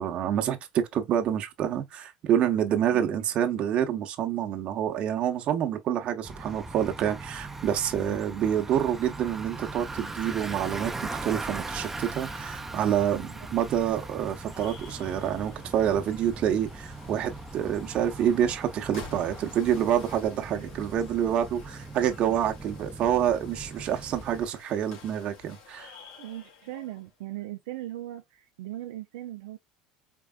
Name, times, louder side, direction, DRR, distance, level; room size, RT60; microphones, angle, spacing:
voice 1, 0.0-13.2 13.5-25.9, right 10 dB, 50° right, 1.0 m, -27 dB
Bicycle, 6.2-24.5, right 3 dB, 10° right, 0.7 m, -40 dB
sound 1, 13.1-27.1, left 5 dB, 75° left, 2.3 m, -51 dB
voice 2, 20.5-20.9 22.2-22.5 26.2-29.6, right 14 dB, 85° right, 0.5 m, -39 dB
4.6 x 3.4 x 2.3 m
supercardioid pair, 105°, 3 cm